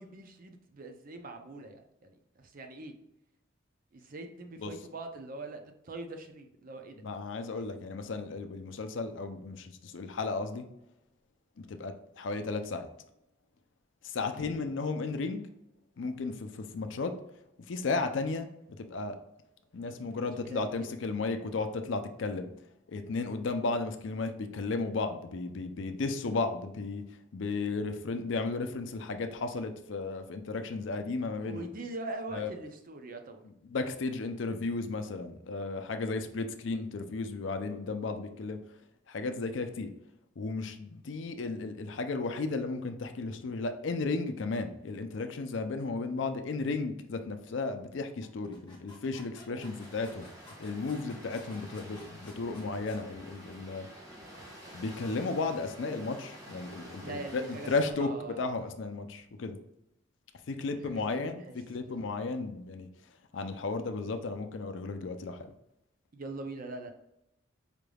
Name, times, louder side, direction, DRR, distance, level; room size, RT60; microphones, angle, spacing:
voice 1, 0.0-2.9 3.9-7.0 14.4-14.5 19.9-20.9 31.4-33.4 49.5-49.6 57.0-57.7 58.0-58.6 60.6-62.4 66.1-66.9, right 2 dB, 45° right, 5 dB, 0.5 m, -43 dB
voice 2, 7.0-10.7 11.6-12.9 14.0-15.4 16.0-17.1 17.7-18.5 18.8-19.2 19.7-22.5 22.9-27.0 27.3-31.7 32.3-32.5 33.4-38.6 39.1-39.9 40.4-50.3 50.6-53.9 54.7-59.6 60.5-62.9 63.3-65.5, left 3 dB, 65° left, 8 dB, 0.5 m, -34 dB
sound 1, 48.2-53.1, left 2 dB, 25° left, 1.1 m, -55 dB
sound 2, 49.6-57.9, equal, 15° right, 1.0 m, -49 dB
5.0 x 3.3 x 2.3 m, 0.84 s
head